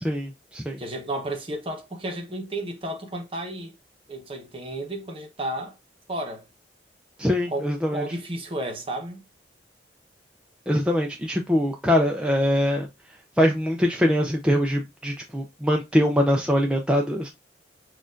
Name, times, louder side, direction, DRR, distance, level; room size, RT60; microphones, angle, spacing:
voice 1, 0.0-0.8 7.2-8.0 10.7-12.9 13.4-17.3, equal, 5° right, 0.4 m, -23 dB
voice 2, 0.8-3.7 4.1-5.8 6.1-6.5 7.5-9.2, right 1 dB, 30° right, 0.9 m, -32 dB
6.3 x 2.4 x 2.4 m
head